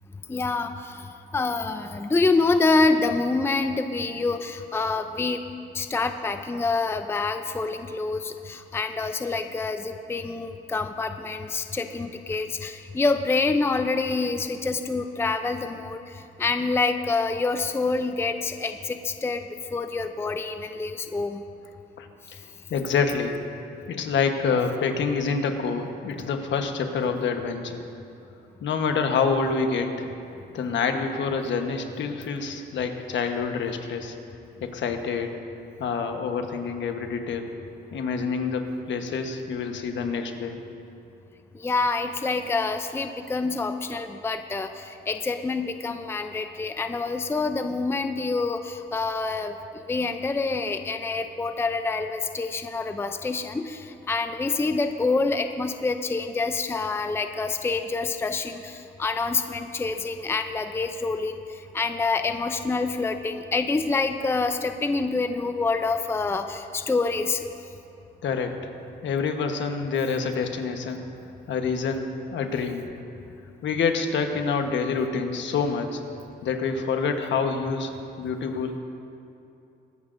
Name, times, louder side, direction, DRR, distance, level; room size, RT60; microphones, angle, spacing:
voice 1, 0.3-1.0 1.3-5.4 5.7-16.0 16.4-19.4 19.7-21.4 41.6-61.4 61.7-67.4, left 3 dB, 10° left, 8 dB, 0.5 m, -26 dB
voice 2, 22.7-23.3 23.9-27.8 28.6-30.1 30.5-34.1 34.6-35.3 35.8-37.5 37.9-40.6 68.2-68.6 69.0-71.0 71.5-72.8 73.6-76.0 76.4-78.8, left 5 dB, 70° left, 5 dB, 1.2 m, -27 dB
22.0 x 10.0 x 2.6 m, 2.7 s
cardioid pair, 90°, 20 cm